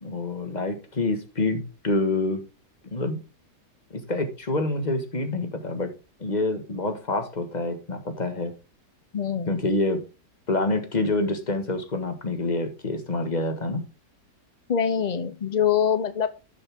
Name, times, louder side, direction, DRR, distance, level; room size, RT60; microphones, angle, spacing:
voice 1, 0.0-2.4 2.9-3.2 3.9-5.9 6.2-8.5 9.5-10.0 10.5-13.8, left 2 dB, 25° left, 7 dB, 1.6 m, -27 dB
voice 2, 9.1-9.6 14.7-16.3, left 8 dB, 85° left, 13 dB, 0.3 m, -24 dB
11.5 x 6.9 x 3.5 m, 0.30 s
omnidirectional pair, 1.8 m